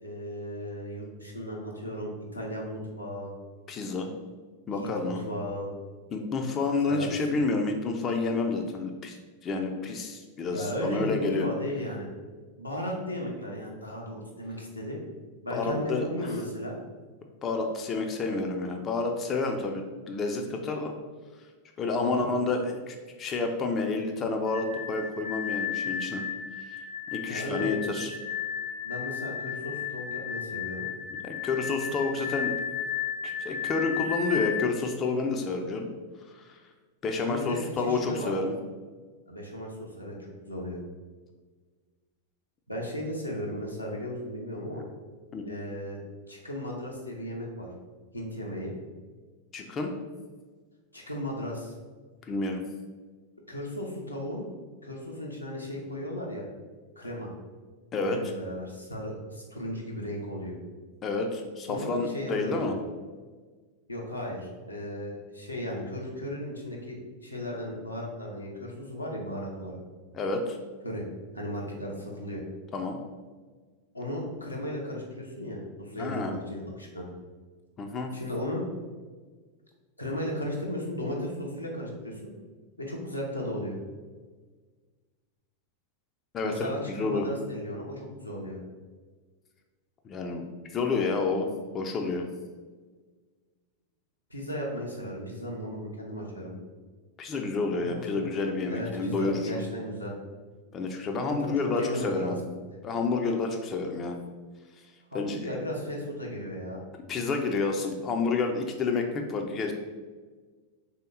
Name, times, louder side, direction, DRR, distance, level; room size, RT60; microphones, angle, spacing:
voice 1, 0.0-3.3 4.8-5.7 6.8-7.2 10.5-12.1 12.6-15.0 15.4-16.8 21.9-22.2 27.3-27.7 28.8-30.9 37.2-38.3 39.3-40.2 40.4-40.8 42.7-44.8 45.4-46.0 46.3-47.7 48.1-48.7 50.9-51.7 53.5-54.5 54.8-56.4 57.0-57.3 58.1-60.5 61.7-62.6 63.9-69.7 70.8-71.0 71.3-72.4 73.9-77.1 78.1-78.6 80.0-82.3 82.8-83.8 86.4-88.6 94.3-96.5 97.7-98.3 98.7-100.1 101.2-102.4 105.1-106.8, equal, 85° left, -2 dB, 0.7 m, -35 dB
voice 2, 3.7-4.1 4.7-5.2 6.1-11.5 15.5-16.3 17.4-20.9 21.3-21.5 21.8-26.2 26.6-26.8 27.1-28.1 31.2-32.7 33.2-35.9 36.2-36.7 37.0-38.6 45.3-45.4 49.5-49.9 52.2-52.6 57.9-58.3 61.0-62.7 70.1-70.6 72.7-73.0 76.0-76.3 77.8-78.1 86.3-87.3 90.0-91.5 91.7-92.3 97.2-99.6 100.7-102.4 102.8-104.2 104.7-105.5 107.1-109.7, left 3 dB, 25° left, 3 dB, 0.4 m, -29 dB
sound 1, 24.5-34.6, left 8 dB, 55° left, 0.8 m, -34 dB
3.4 x 2.8 x 4.0 m, 1.4 s
figure-of-eight pair, 90°, 0 cm